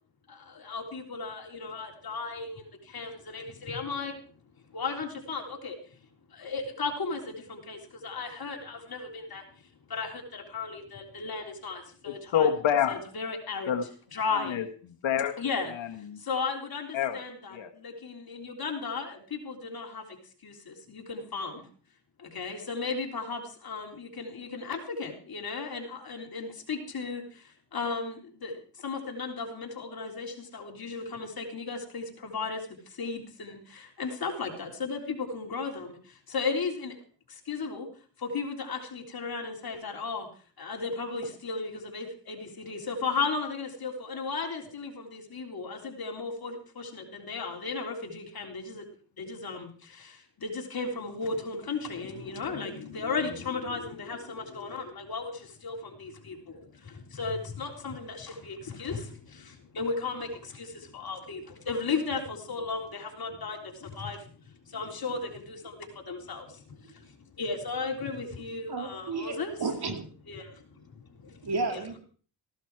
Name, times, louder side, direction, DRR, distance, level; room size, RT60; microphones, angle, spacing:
voice 1, 0.3-4.2 4.7-6.0 6.3-12.5 12.9-13.7 14.1-14.6 15.4-15.7 16.2-21.7 22.2-36.9 37.3-37.9 38.2-40.3 40.6-48.9 49.2-69.6 70.3-71.8, left 4 dB, 45° left, 2 dB, 3.6 m, -35 dB
voice 2, 12.1-13.0 13.7-13.8 14.3-14.7 15.0-15.3 15.7-16.2 16.9-17.2 17.5-17.7, left 8 dB, 65° left, 6 dB, 1.6 m, -27 dB
voice 3, 68.7-70.0 71.4-72.0, right 3 dB, 50° right, 6 dB, 2.8 m, -32 dB
15.5 x 11.5 x 4.8 m, 0.43 s
cardioid pair, 70°, 49 cm